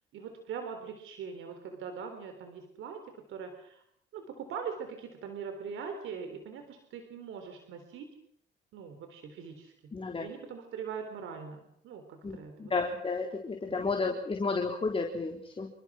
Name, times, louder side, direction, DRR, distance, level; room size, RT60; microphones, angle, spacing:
voice 1, 0.1-3.0 3.3-3.8 4.1-8.1 8.7-9.9 10.2-12.7 13.7-13.8, right 6 dB, 80° right, 6 dB, 3.7 m, -42 dB
voice 2, 9.9-10.3 12.2-15.7, left 4 dB, 30° left, 2 dB, 3.8 m, -32 dB
28.5 x 24.0 x 6.3 m, 0.68 s
cardioid pair, 90°, 20 cm